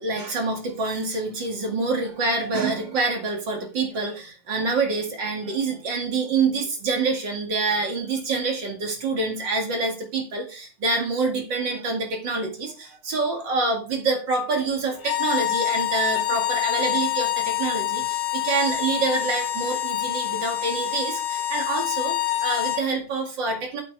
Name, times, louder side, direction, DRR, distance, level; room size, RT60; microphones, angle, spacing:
voice 1, 0.0-23.8, right 3 dB, 40° right, 2 dB, 2.2 m, -26 dB
sound 1, 15.0-22.9, left 14 dB, 75° left, 2.6 m, -26 dB
8.5 x 6.7 x 4.8 m, 0.35 s
omnidirectional pair, 4.1 m